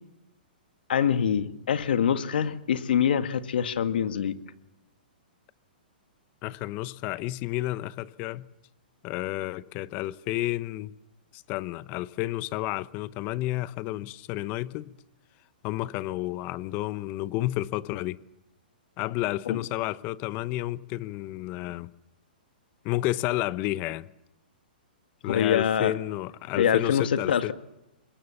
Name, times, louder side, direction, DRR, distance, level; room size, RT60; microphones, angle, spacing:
voice 1, 0.9-4.3 19.5-19.6 25.2-25.9 26.6-27.5, left 8 dB, 70° left, 1.8 m, -25 dB
voice 2, 6.4-8.5 9.0-10.9 11.3-14.9 15.6-18.2 19.0-21.9 22.8-24.1 25.2-27.5, left 16 dB, 35° left, 0.9 m, -31 dB
26.5 x 22.0 x 7.2 m
hypercardioid pair, 140°, 5 cm